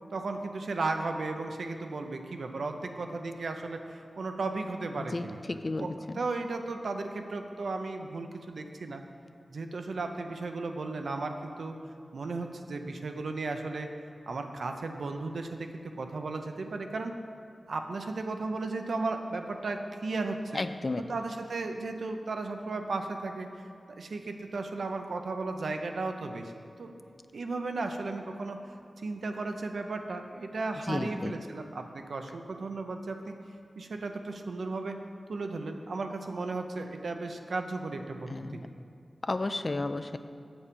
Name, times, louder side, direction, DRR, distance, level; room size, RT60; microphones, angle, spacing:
voice 1, 0.1-5.4 5.8-9.0 9.5-11.7 12.1-13.9 14.3-17.1 17.7-20.6 21.1-23.6 23.9-26.5 26.8-26.9 27.3-28.6 29.0-33.3 33.8-35.0 35.3-38.6, right 3 dB, 85° right, 5 dB, 0.6 m, -35 dB
voice 2, 5.0-6.2 20.5-21.1 30.8-31.3 38.3-38.7 39.2-40.2, left 2 dB, 45° left, 10 dB, 0.3 m, -33 dB
7.2 x 7.0 x 5.2 m, 2.3 s
wide cardioid pair, 65°, 0 cm